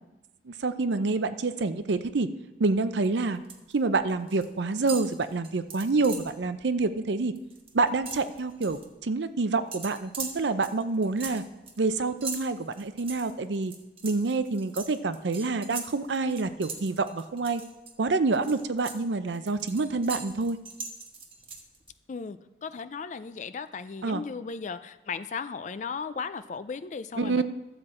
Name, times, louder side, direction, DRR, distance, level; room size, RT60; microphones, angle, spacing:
voice 1, 0.5-2.3 2.6-3.4 3.7-7.3 7.7-11.4 11.8-13.7 14.0-17.6 18.0-20.6 24.0-24.2 27.2-27.4, right 3 dB, 80° right, 11 dB, 0.6 m, -27 dB
sound 1, 3.0-3.7 4.0-4.5 4.8-6.4 6.8-6.9 7.2-8.9 9.7-17.9 18.3-21.9, right 5 dB, 30° right, 1.2 m, -41 dB
voice 2, 22.1-27.4, left 5 dB, 40° left, 12 dB, 0.4 m, -36 dB
12.5 x 7.9 x 4.3 m, 0.99 s
head